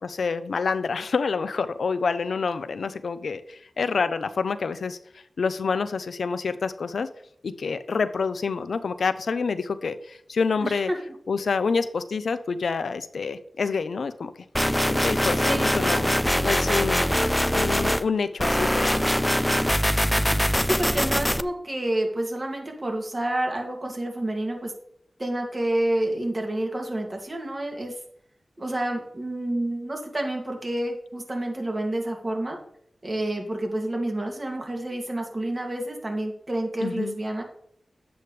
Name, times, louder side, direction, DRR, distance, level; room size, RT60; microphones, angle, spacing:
voice 1, 0.0-5.0 5.4-7.1 7.4-10.9 11.3-14.3 14.9-17.1 17.5-19.0 36.8-37.1, left 5 dB, 80° left, 12 dB, 0.6 m, -27 dB
voice 2, 10.6-11.0 15.4-15.9 20.3-24.7 25.2-27.9 28.6-32.6 33.0-37.4, right 1 dB, 40° right, 2 dB, 2.4 m, -29 dB
sound 1, 14.5-18.0 18.4-21.4, equal, 5° left, 0.4 m, -23 dB
10.0 x 8.0 x 3.3 m, 0.67 s
cardioid pair, 45°, 0 cm